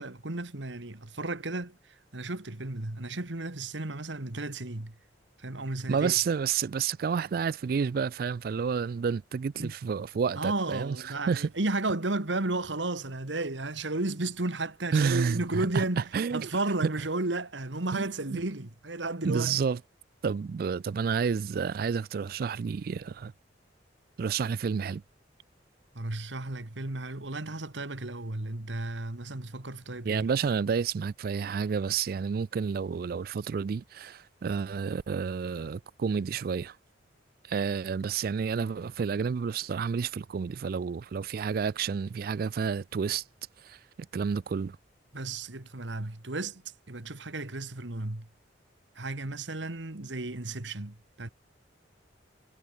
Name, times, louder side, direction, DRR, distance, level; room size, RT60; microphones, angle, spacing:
voice 1, 0.0-1.8 2.1-4.9 5.4-6.1 9.6-9.7 10.3-16.0 16.3-19.5 26.0-30.3 45.1-46.6 46.9-48.3 49.0-51.3, right 2 dB, 80° right, 1.9 m, -33 dB
voice 2, 5.9-11.5 14.9-16.5 16.8-16.9 17.9-18.4 19.2-19.8 20.2-23.3 24.2-25.0 30.0-36.8 37.5-43.2 43.6-43.8 44.1-44.8, right 6 dB, 50° right, 0.3 m, -30 dB
head